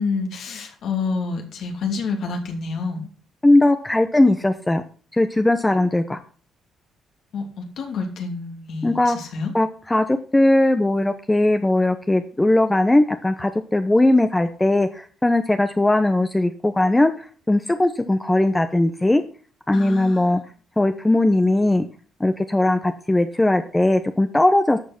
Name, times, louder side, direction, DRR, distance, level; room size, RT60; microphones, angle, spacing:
voice 1, 0.0-3.1 7.3-9.5 19.7-20.4, left 4 dB, 70° left, 3 dB, 2.8 m, -28 dB
voice 2, 3.4-4.8 5.1-6.2 8.8-9.2 9.5-19.2 19.7-20.4 20.8-21.9 22.2-24.8, left 1 dB, 15° left, 7 dB, 0.8 m, -19 dB
11.5 x 6.2 x 5.9 m, 0.41 s
cardioid pair, 90°, 0 cm